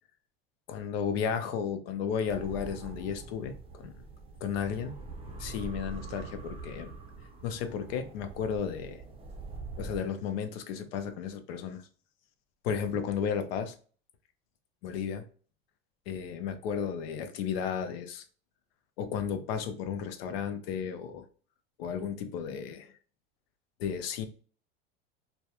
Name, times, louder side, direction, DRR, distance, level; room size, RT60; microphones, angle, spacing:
voice 1, 0.7-3.9 4.4-4.9 5.4-6.9 7.4-9.0 9.8-11.8 12.6-13.7 14.8-15.3 16.1-18.2 19.0-21.3 21.8-22.9 23.8-24.3, left 7 dB, 75° left, 0.6 m, -33 dB
sound 1, 2.3-10.0, right 3 dB, 20° right, 0.5 m, -44 dB
2.2 x 2.1 x 2.8 m
supercardioid pair, 105°, 30 cm